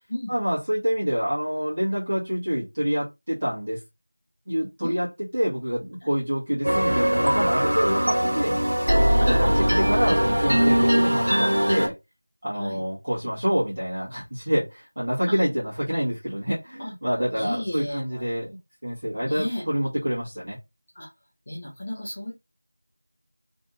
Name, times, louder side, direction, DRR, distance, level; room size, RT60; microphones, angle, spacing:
voice 1, 0.3-3.8 4.5-5.1 5.3-8.5 9.2-11.9 12.4-18.5 18.8-20.6, equal, 20° right, 1.0 m, -27 dB
sound 1, 6.6-11.9, equal, 55° right, 1.1 m, -21 dB
voice 2, 9.2-9.9 12.5-12.8 15.3-15.4 16.8-16.9 17.3-18.2 19.2-19.6 20.9-21.1 21.5-22.3, left 1 dB, 10° left, 0.5 m, -33 dB
2.6 x 2.5 x 2.7 m
figure-of-eight pair, 180°, 0 cm